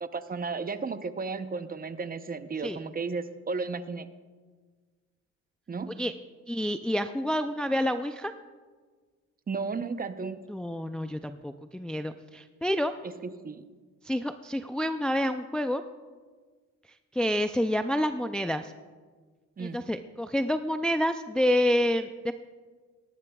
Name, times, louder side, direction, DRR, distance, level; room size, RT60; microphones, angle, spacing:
voice 1, 0.0-4.1 5.7-6.0 9.5-10.5 13.0-13.7 19.6-19.8, right 4 dB, 30° right, 10 dB, 0.7 m, -34 dB
voice 2, 6.5-8.3 10.5-12.9 14.0-15.8 17.1-18.7 19.6-22.3, equal, 5° left, 8 dB, 0.4 m, -28 dB
18.0 x 15.5 x 2.3 m, 1.5 s
cardioid pair, 90°, 30 cm